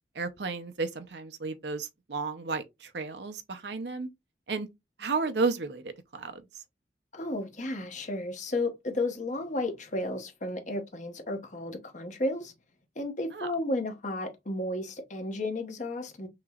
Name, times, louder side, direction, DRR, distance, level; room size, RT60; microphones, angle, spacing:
voice 1, 0.1-4.1 4.5-4.7 5.0-6.4 13.3-13.5, right 4 dB, 70° right, 0.7 m, -33 dB
voice 2, 7.1-12.5 13.0-16.3, left 2 dB, 45° left, 1.1 m, -33 dB
6.2 x 3.0 x 2.4 m
head